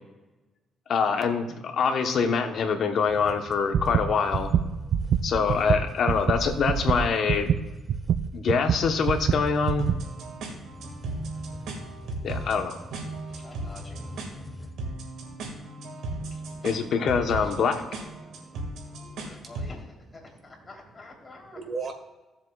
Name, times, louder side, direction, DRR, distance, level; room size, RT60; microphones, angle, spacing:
voice 1, 0.9-4.5 5.2-7.5 8.3-9.9 12.2-12.8 16.6-17.8, left 5 dB, 60° left, 6 dB, 1.1 m, -25 dB
sound 1, 3.0-14.7, left 1 dB, 10° left, 1.2 m, -44 dB
sound 2, 3.7-10.0, right 8 dB, 65° right, 0.4 m, -26 dB
sound 3, 9.8-19.8, right 2 dB, 80° right, 2.0 m, -37 dB
voice 2, 13.2-14.2 14.5-14.6 16.3-16.4 17.2-17.5 19.2-21.6, left 2 dB, 30° left, -2 dB, 3.3 m, -48 dB
voice 3, 16.2-16.6 18.2-19.2 21.5-21.9, right 4 dB, 45° right, 5 dB, 1.6 m, -39 dB
16.0 x 7.4 x 2.4 m, 1.1 s
cardioid pair, 90°, 0 cm